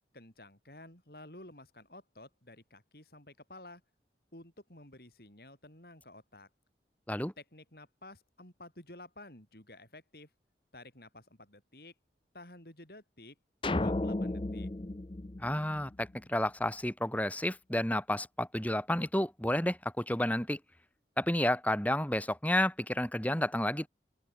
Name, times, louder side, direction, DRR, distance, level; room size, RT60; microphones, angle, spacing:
voice 1, 0.1-3.8 4.3-6.5 7.4-10.3 10.7-11.9 12.3-13.4 13.7-14.7, left 1 dB, 60° left, 7.3 m, -52 dB
sound 1, 13.6-16.2, left 2 dB, 30° left, 0.6 m, -34 dB
voice 2, 15.4-20.6 21.2-23.9, left 1 dB, 10° left, 2.7 m, -31 dB
open air
head